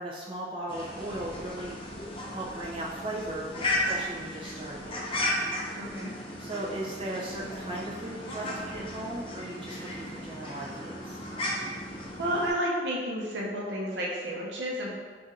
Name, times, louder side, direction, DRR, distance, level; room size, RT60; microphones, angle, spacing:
voice 1, 0.0-1.8 2.3-5.1 6.4-11.2, right 1 dB, 30° right, -5 dB, 0.5 m, -37 dB
sound 1, 0.7-12.5, left 1 dB, 30° left, 0.6 m, -35 dB
voice 2, 5.8-6.1 12.2-14.9, equal, 75° right, -3 dB, 0.8 m, -31 dB
4.2 x 2.6 x 3.7 m, 1.5 s
head